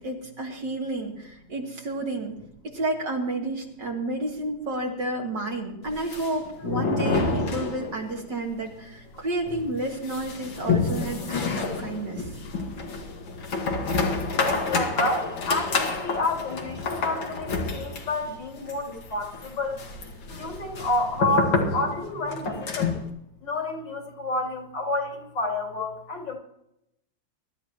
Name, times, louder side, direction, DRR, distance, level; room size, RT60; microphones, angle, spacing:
voice 1, 0.0-2.3 2.6-12.4, right 2 dB, 65° right, -1 dB, 3.4 m, -31 dB
sound 1, 5.9-8.2 8.5-8.6 8.9-9.0 9.5-23.1, left 4 dB, 85° left, 2.7 m, -29 dB
voice 2, 14.3-19.8 20.4-22.9 23.4-26.4, left 2 dB, 70° left, -1 dB, 3.9 m, -29 dB
23.0 x 13.0 x 3.0 m, 0.81 s
omnidirectional pair, 2.1 m